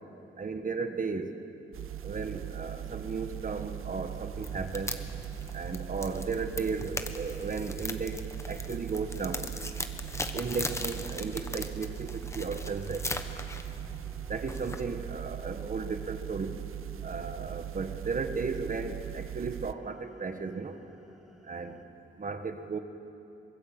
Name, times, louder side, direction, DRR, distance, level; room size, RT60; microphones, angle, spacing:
voice 1, 0.4-1.3 2.0-5.0 5.5-8.2 8.5-9.5 10.3-13.1 14.3-16.5 17.0-20.7 21.5-21.8 22.2-22.8, right 4 dB, 40° right, 8 dB, 1.3 m, -35 dB
sound 1, 1.7-19.7, right 11 dB, 80° right, 0.6 m, -40 dB
sound 2, 1.9-21.8, right 1 dB, ahead, 1.8 m, -59 dB
sound 3, 4.3-15.1, left 2 dB, 15° left, 1.0 m, -40 dB
24.0 x 22.0 x 7.8 m, 2.9 s
wide cardioid pair, 170°, 21 cm